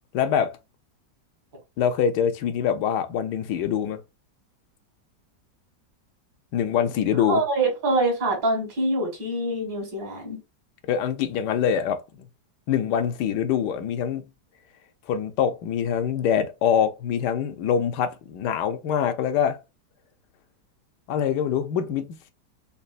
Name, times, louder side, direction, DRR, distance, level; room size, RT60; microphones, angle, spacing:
voice 1, 0.1-0.5 1.8-4.0 6.5-7.4 10.9-12.3 12.7-14.2 15.1-19.6 21.1-22.2, left 8 dB, 75° left, 1.2 m, -24 dB
voice 2, 7.3-10.4, right 2 dB, 75° right, 2.5 m, -25 dB
5.3 x 2.5 x 2.5 m
omnidirectional pair, 1.9 m